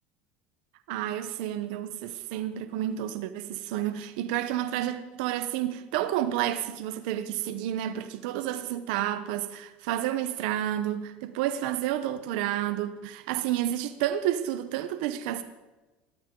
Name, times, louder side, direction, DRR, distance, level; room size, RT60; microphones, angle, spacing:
voice 1, 0.9-15.4, right 12 dB, 80° right, 0.9 m, -30 dB
21.5 x 13.5 x 3.9 m
supercardioid pair, 120°, 5 cm